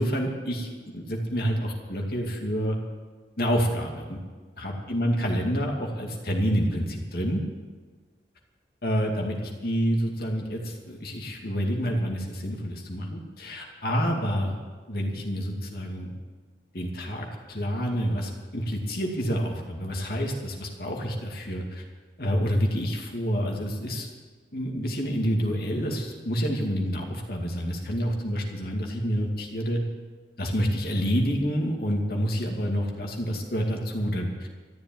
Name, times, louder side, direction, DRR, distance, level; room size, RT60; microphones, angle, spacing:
voice 1, 0.0-2.8 3.4-4.2 4.6-7.4 8.8-14.6 14.9-16.1 16.7-21.8 22.2-24.1 24.5-29.8 30.4-34.5, equal, 55° left, 1 dB, 2.4 m, -28 dB
14.0 x 10.5 x 9.3 m, 1.4 s
head